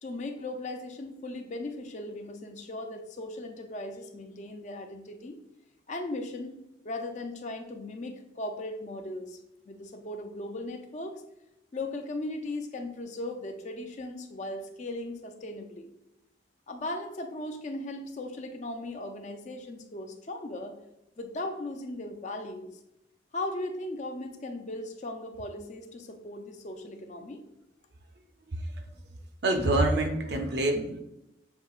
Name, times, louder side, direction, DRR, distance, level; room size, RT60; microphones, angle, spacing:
voice 1, 0.0-5.4 5.9-6.6 6.8-9.4 9.7-11.2 11.7-15.9 16.7-20.8 21.2-22.8 23.3-27.4, left 2 dB, 40° left, 6 dB, 0.4 m, -37 dB
voice 2, 29.4-31.0, right 2 dB, 65° right, 4 dB, 0.5 m, -26 dB
6.7 x 2.8 x 2.4 m, 0.86 s
head